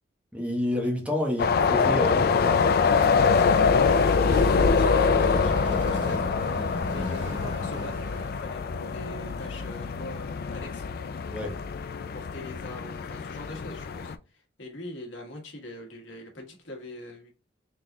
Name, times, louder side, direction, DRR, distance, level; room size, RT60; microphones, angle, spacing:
voice 1, 0.3-2.8 3.2-3.5 11.3-11.6, left 1 dB, 5° right, 1.0 m, -30 dB
sound 1, 1.4-14.1, left 5 dB, 50° left, 0.3 m, -24 dB
sound 2, 3.2-8.5, right 1 dB, 65° right, 1.5 m, -38 dB
voice 2, 3.7-6.4 6.9-10.9 12.1-17.3, left 1 dB, 75° left, 1.5 m, -42 dB
3.9 x 3.6 x 2.7 m
head